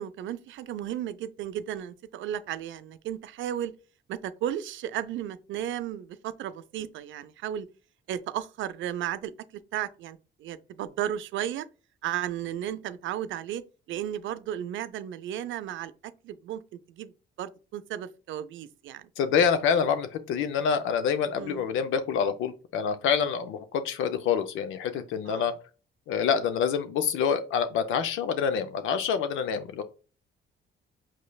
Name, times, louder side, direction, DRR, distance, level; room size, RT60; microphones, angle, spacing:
voice 1, 0.0-3.7 4.1-7.7 8.1-9.3 9.7-11.7 12.0-13.6 13.9-15.9 16.2-16.6 17.0-17.1 17.4-19.1 21.3-21.7 25.3-25.5, right 11 dB, 75° right, 0.5 m, -34 dB
voice 2, 19.2-25.5 26.1-29.8, left 7 dB, 85° left, 0.5 m, -26 dB
5.8 x 3.2 x 2.2 m
cardioid pair, 90°, 20 cm